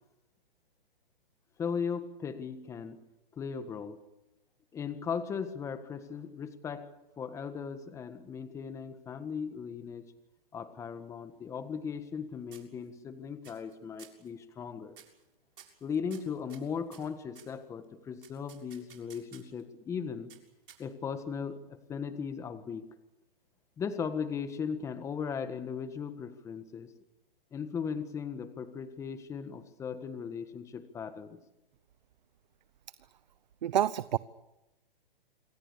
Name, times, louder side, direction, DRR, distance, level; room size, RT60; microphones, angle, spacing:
voice 1, 1.6-3.0 3.3-4.0 4.7-6.9 7.2-10.1 10.5-15.0 15.8-20.3 20.8-22.8 23.8-26.9 27.5-31.4, left 6 dB, 10° left, 10 dB, 1.6 m, -37 dB
sound 1, 11.3-12.2 12.5-13.1 13.4-13.7 14.0-14.3 14.9-15.2 15.6-17.6 18.2-19.6 20.3-21.1, right 8 dB, 65° right, 7.0 m, -55 dB
voice 2, 33.6-34.2, right 11 dB, 50° right, 17 dB, 0.9 m, -27 dB
27.5 x 24.5 x 7.0 m, 0.95 s
hypercardioid pair, 155°, 29 cm